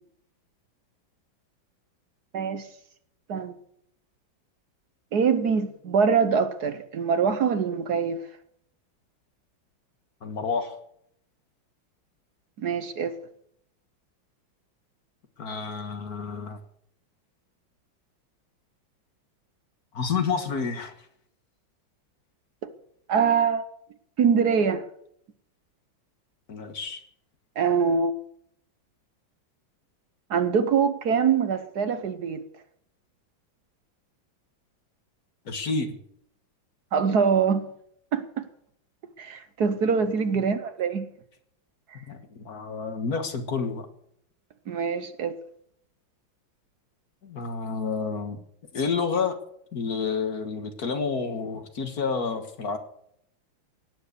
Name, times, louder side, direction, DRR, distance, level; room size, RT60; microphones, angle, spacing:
voice 1, 2.3-2.7 3.3-3.6 5.1-8.2 12.6-13.1 22.6-22.7 23.1-23.6 24.2-24.8 27.6-28.2 30.3-32.4 36.9-37.7 38.1-38.3 39.2-41.1 44.7-45.4, right 6 dB, 60° right, 1.4 m, -24 dB
voice 2, 10.2-10.8 15.4-16.6 19.9-20.9 26.5-27.0 35.5-36.0 42.1-43.9 47.2-48.4 48.7-49.4 49.7-52.8, left 5 dB, 50° left, 1.9 m, -29 dB
17.5 x 9.8 x 6.7 m
omnidirectional pair, 2.1 m